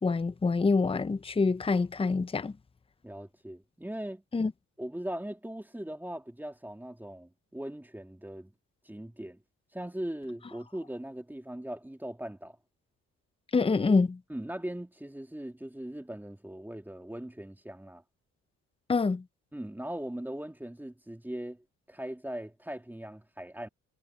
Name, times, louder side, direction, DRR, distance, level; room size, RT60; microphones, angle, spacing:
voice 1, 0.0-2.5 4.3-4.5 13.5-14.2 18.9-19.2, left 4 dB, 20° left, 0.8 m, -26 dB
voice 2, 3.0-4.2 4.8-8.5 8.8-9.4 9.7-12.6 14.3-18.0 19.5-23.7, right 1 dB, 5° right, 2.6 m, -40 dB
cardioid pair, 90°, 30 cm